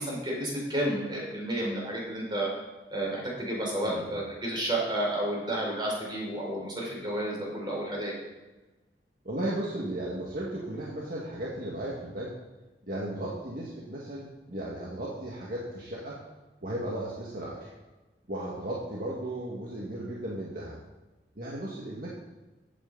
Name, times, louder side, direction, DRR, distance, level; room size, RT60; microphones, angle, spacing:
voice 1, 0.0-2.5 2.9-8.1, right 1 dB, 25° right, -3 dB, 4.6 m, -31 dB
voice 2, 3.8-4.1 9.2-12.3 12.9-16.2 16.6-17.7 18.3-20.8 21.4-22.1, right 1 dB, 55° right, -5 dB, 2.1 m, -35 dB
15.0 x 9.5 x 4.1 m, 1.2 s
head